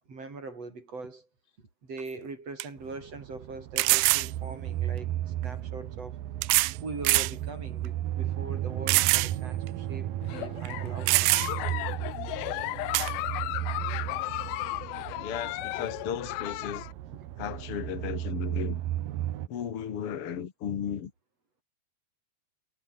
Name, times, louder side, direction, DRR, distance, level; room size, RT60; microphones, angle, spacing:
voice 1, 0.1-1.3 1.8-6.2 6.8-11.4, right 3 dB, 35° right, 6.0 m, -41 dB
sound 1, 2.0-2.1 2.6-2.7 3.8-4.3 5.4-5.5 6.4-6.8 7.0-7.3 7.8-7.9 8.9-9.3 9.7-9.8 10.6-10.7 11.1-11.7 12.9-13.1, right 21 dB, 85° right, 2.4 m, -23 dB
sound 2, 2.8-19.5, right 13 dB, 65° right, 2.6 m, -35 dB
Giggle, 10.2-16.9, left 19 dB, 90° left, 2.1 m, -35 dB
voice 2, 15.2-16.9 17.4-18.8 19.5-21.1, left 8 dB, 55° left, 1.6 m, -35 dB
omnidirectional pair, 5.1 m